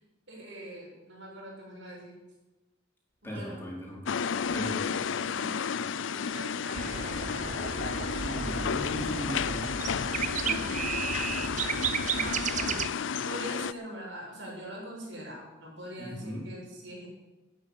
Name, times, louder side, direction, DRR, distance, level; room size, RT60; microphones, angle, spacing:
voice 1, 0.3-2.2 3.2-3.6 4.8-4.9 5.3-7.9 10.4-11.3 12.1-12.8 13.2-17.1, right 1 dB, 70° right, -3 dB, 7.0 m, -43 dB
voice 2, 3.2-4.0 4.5-5.0 8.2-9.7 16.0-16.5, equal, 10° left, -4 dB, 4.5 m, -38 dB
sound 1, 4.1-13.7, left 6 dB, 75° left, 0.5 m, -32 dB
sound 2, 6.7-12.9, right 7 dB, 40° right, 0.6 m, -33 dB
13.0 x 9.8 x 8.9 m, 1.1 s
head